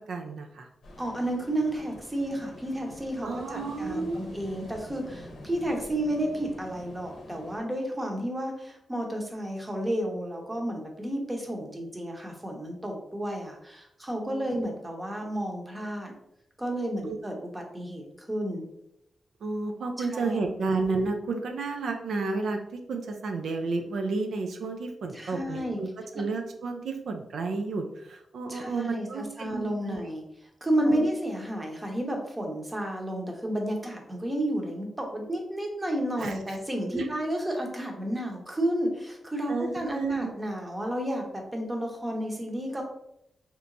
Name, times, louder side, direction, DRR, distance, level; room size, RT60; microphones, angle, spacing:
voice 1, 0.1-0.7 3.2-4.3 14.3-14.6 17.0-17.2 19.4-22.6 22.9-30.0 30.8-31.0 36.2-36.6 36.9-37.1 39.5-40.3, right 3 dB, 80° right, 4 dB, 0.4 m, -31 dB
Ocean, 0.8-7.6, left 1 dB, 75° left, 0.7 m, -46 dB
voice 2, 1.0-16.1 16.6-18.6 20.0-20.4 25.1-25.8 28.5-30.2 30.6-42.8, right 1 dB, 15° right, 1 dB, 0.8 m, -31 dB
3.3 x 2.9 x 2.6 m, 0.79 s
cardioid pair, 95°, 0 cm